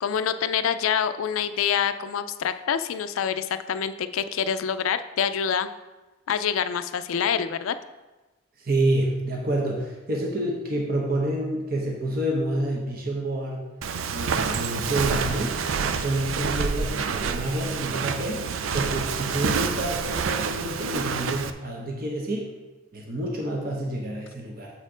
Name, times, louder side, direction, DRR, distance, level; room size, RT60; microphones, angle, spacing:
voice 1, 0.0-5.7 6.3-7.7, left 8 dB, 85° left, 11 dB, 0.4 m, -26 dB
voice 2, 8.6-13.6 14.0-15.6 15.8-22.5 22.9-24.7, right 1 dB, 45° right, -1 dB, 0.9 m, -28 dB
Walk footsteps, 13.8-21.5, right 6 dB, 80° right, 0.4 m, -28 dB
7.3 x 4.3 x 4.9 m, 1.2 s
head